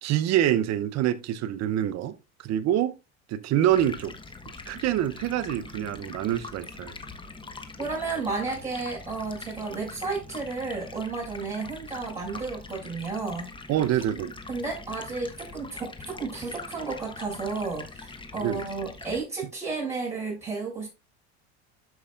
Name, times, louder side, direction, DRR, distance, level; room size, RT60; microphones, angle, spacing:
voice 1, 0.0-3.0 3.3-4.1 4.7-6.9 13.7-14.3 18.4-18.6, right 11 dB, 50° right, 0.9 m, -26 dB
Stream, 3.7-19.2, left 3 dB, 15° left, 1.3 m, -43 dB
voice 2, 7.8-13.5 14.5-20.9, right 4 dB, 20° right, 5.7 m, -32 dB
12.5 x 5.6 x 2.5 m
supercardioid pair, 100°, 34 cm